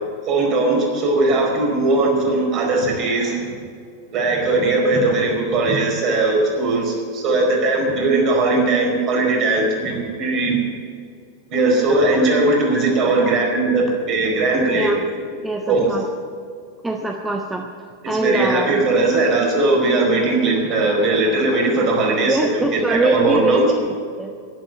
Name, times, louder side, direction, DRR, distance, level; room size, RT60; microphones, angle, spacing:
voice 1, 0.3-3.3 4.1-10.6 11.5-15.0 15.7-15.9 18.0-23.7, right 2 dB, 35° right, -1 dB, 4.8 m, -19 dB
voice 2, 11.8-13.8 14.6-16.1 16.8-17.7 18.1-19.2 22.3-23.9 24.2-24.3, right 2 dB, 5° right, 3 dB, 1.0 m, -24 dB
11.5 x 11.0 x 9.3 m, 2.2 s
figure-of-eight pair, 90°, 0 cm